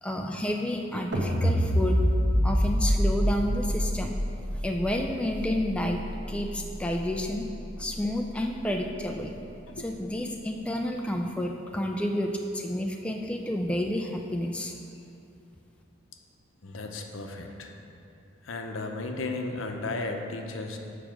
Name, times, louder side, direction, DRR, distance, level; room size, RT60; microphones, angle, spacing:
voice 1, 0.0-2.0 2.4-4.2 4.5-7.5 7.8-9.4 9.8-14.7, left 1 dB, 5° left, 2 dB, 0.3 m, -30 dB
sound 1, 1.1-7.4, equal, 60° right, 1.1 m, -27 dB
voice 2, 16.6-17.7 18.5-20.8, left 2 dB, 85° left, 4 dB, 0.7 m, -34 dB
7.0 x 4.8 x 6.2 m, 2.7 s
head